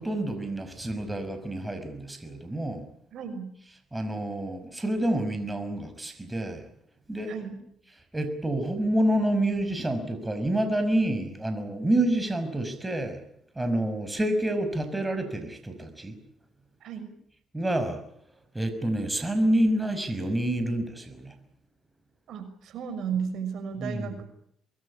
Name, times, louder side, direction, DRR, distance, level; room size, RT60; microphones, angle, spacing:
voice 1, 0.0-2.9 3.9-6.7 7.1-7.4 8.1-13.2 13.5-16.1 17.5-18.0 18.5-21.3 23.8-24.2, right 1 dB, 15° right, 9 dB, 5.7 m, -28 dB
voice 2, 3.1-3.5 7.3-7.6 16.8-17.1 22.3-24.2, right 7 dB, 75° right, 9 dB, 6.0 m, -34 dB
25.5 x 21.0 x 8.7 m, 0.70 s
cardioid pair, 90°, 0 cm